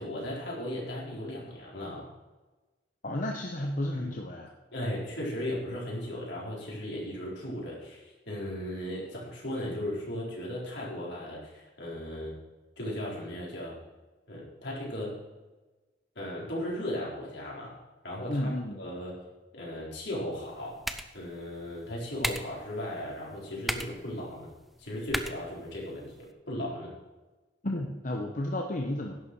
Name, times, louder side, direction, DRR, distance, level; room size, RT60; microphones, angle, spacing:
voice 1, 0.0-2.1 4.0-4.2 4.7-12.3 12.8-13.7 14.3-15.1 16.2-17.7 18.0-19.1 19.5-20.8 21.1-24.5 24.8-26.9, left 1 dB, 70° left, -4 dB, 4.1 m, -36 dB
voice 2, 3.0-4.5 18.3-18.8 27.6-29.2, left 1 dB, 45° left, 0 dB, 1.0 m, -32 dB
sound 1, 20.3-26.3, equal, ahead, 0.6 m, -39 dB
11.0 x 7.0 x 6.1 m, 1.2 s
head